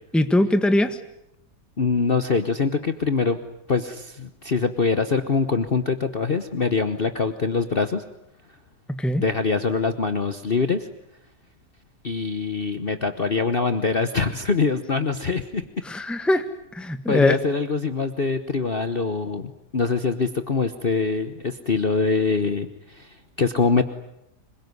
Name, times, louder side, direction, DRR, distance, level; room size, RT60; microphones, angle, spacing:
voice 1, 0.1-1.0 9.0-9.2 15.8-16.4 16.7-17.4, left 1 dB, ahead, 9 dB, 1.4 m, -21 dB
voice 2, 1.8-3.4 3.7-8.0 9.2-10.9 12.0-15.6 17.1-23.8, left 4 dB, 35° left, 10 dB, 1.2 m, -24 dB
26.0 x 22.5 x 9.7 m, 0.81 s
omnidirectional pair, 1.8 m